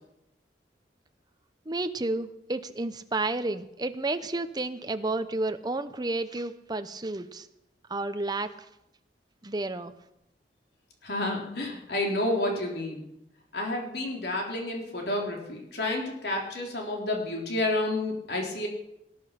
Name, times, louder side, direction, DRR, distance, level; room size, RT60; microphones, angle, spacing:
voice 1, 1.7-7.5 7.9-8.7 9.4-9.9, right 2 dB, 25° right, 10 dB, 0.8 m, -31 dB
voice 2, 11.0-13.1 13.5-18.7, left 1 dB, 65° left, 0 dB, 3.7 m, -30 dB
19.0 x 10.5 x 5.8 m, 0.83 s
head